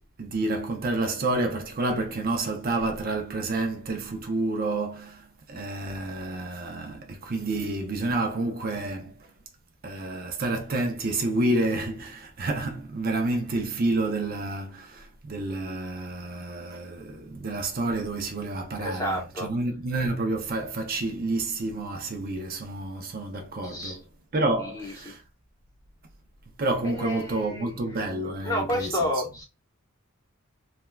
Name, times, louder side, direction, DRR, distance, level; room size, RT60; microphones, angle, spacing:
voice 1, 0.2-9.1 9.8-24.0 24.3-25.2 26.6-29.1, right 2 dB, 45° right, 0.5 m, -29 dB
voice 2, 18.8-19.5 23.6-24.0 24.6-25.1 26.8-27.8 28.4-29.4, left 1 dB, 15° left, 0.9 m, -30 dB
3.4 x 2.3 x 2.2 m
head